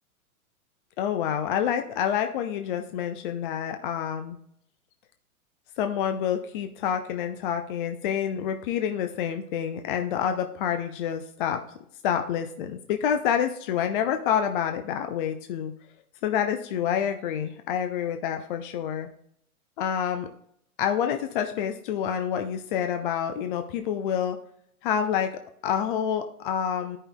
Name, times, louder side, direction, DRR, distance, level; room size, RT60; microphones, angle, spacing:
voice 1, 1.0-4.4 5.8-11.6 12.0-15.7 16.2-19.1 19.8-20.3 20.8-24.4 24.8-25.3 25.6-27.0, left 8 dB, 35° left, 6 dB, 0.6 m, -28 dB
14.0 x 5.5 x 2.2 m, 0.70 s
figure-of-eight pair, 110°, 44 cm